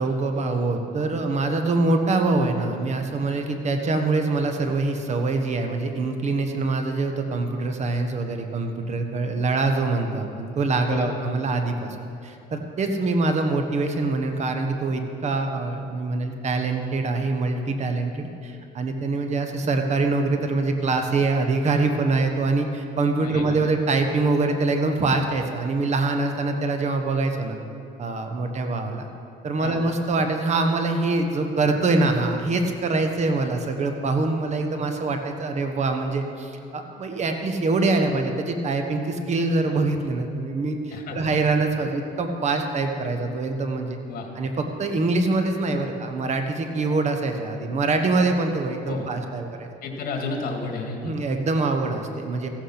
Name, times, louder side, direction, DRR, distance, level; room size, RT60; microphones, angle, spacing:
voice 1, 0.0-27.6 28.0-29.1 29.4-44.0 44.4-49.7 51.0-52.5, right 3 dB, 40° right, 5 dB, 1.2 m, -24 dB
voice 2, 10.8-11.2 23.2-23.6 29.6-29.8 40.9-41.2 44.1-44.3 48.9-49.1 49.8-51.1, left 3 dB, 60° left, 2 dB, 2.1 m, -31 dB
15.0 x 8.8 x 5.8 m, 2.6 s
cardioid pair, 110°, 17 cm